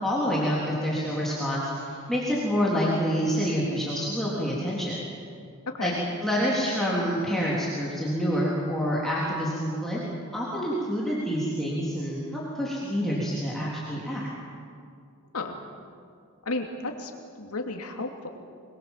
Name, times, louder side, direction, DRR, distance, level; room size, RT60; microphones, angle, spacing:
voice 1, 0.0-5.0 5.8-5.9 6.2-10.0 10.3-14.3, equal, ahead, -7 dB, 3.7 m, -27 dB
voice 2, 16.4-17.1 17.4-18.3, left 2 dB, 85° left, 3 dB, 2.8 m, -33 dB
26.0 x 22.0 x 7.5 m, 2.3 s
head